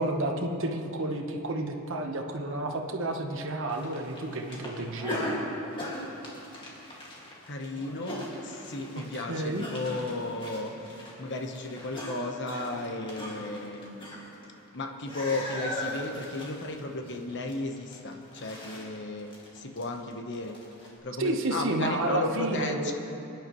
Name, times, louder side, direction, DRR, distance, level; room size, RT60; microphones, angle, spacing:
voice 1, 0.0-5.4 9.3-9.7 21.2-22.9, right 2 dB, 60° right, 3 dB, 1.1 m, -30 dB
sound 1, 3.7-14.7 15.0-20.9, left 1 dB, 25° left, 2.1 m, -39 dB
voice 2, 7.5-14.2 14.7-20.6 20.8-22.9, left 2 dB, 55° left, 4 dB, 1.0 m, -34 dB
23.0 x 10.5 x 3.1 m, 2.9 s
head